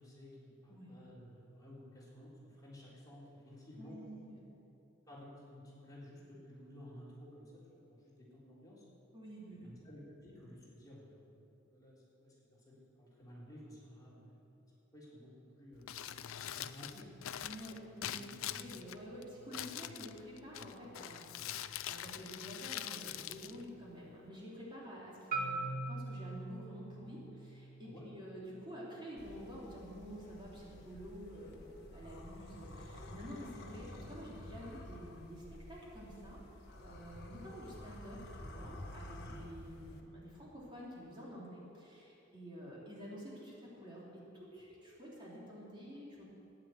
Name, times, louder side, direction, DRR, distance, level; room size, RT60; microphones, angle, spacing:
voice 1, 0.0-4.0 5.0-8.9 9.6-12.4 12.7-14.4 14.9-15.9 16.5-17.1 18.1-18.4 27.8-28.2 39.2-39.4, left 1 dB, 20° left, -7 dB, 3.7 m, -54 dB
voice 2, 3.7-4.4 9.1-9.7 17.4-36.4 36.8-46.2, equal, 25° right, -6 dB, 3.3 m, -49 dB
Crumpling crinkling, 15.7-24.3, left 11 dB, 85° left, 0.5 m, -45 dB
Marimba xylophone, 25.3-29.5, right 3 dB, 45° right, 1.8 m, -43 dB
sound 1, 29.2-40.0, left 1 dB, 55° left, 1.4 m, -51 dB
14.5 x 10.0 x 7.8 m, 2.8 s
head